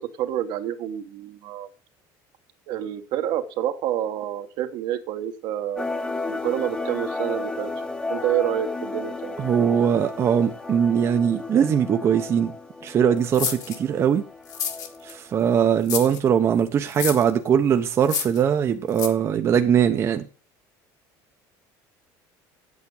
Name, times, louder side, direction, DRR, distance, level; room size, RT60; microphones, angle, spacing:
voice 1, 0.0-1.7 2.7-5.9 6.3-7.7 8.1-9.4, right 11 dB, 65° right, 1.3 m, -28 dB
sound 1, 5.8-15.3, left 3 dB, 10° left, 1.1 m, -33 dB
voice 2, 9.4-12.5 12.8-14.3 15.0-20.3, right 8 dB, 35° right, 0.8 m, -21 dB
sound 2, 13.3-13.8 14.5-15.1 15.9-16.2 16.9-17.3 18.0-18.4 18.9-19.1, left 7 dB, 45° left, 1.7 m, -29 dB
8.5 x 8.2 x 6.5 m
cardioid pair, 145°, 8 cm